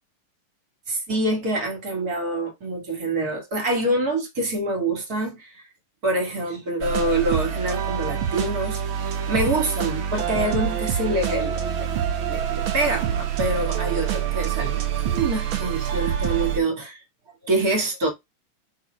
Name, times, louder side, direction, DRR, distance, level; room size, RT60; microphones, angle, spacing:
voice 1, 0.9-5.6 6.0-11.9 12.3-14.8 15.1-17.0 17.4-18.1, right 2 dB, 35° right, 1.7 m, -26 dB
sound 1, 6.8-16.6, right 9 dB, 70° right, 1.2 m, -26 dB
5.0 x 4.7 x 4.4 m
omnidirectional pair, 3.8 m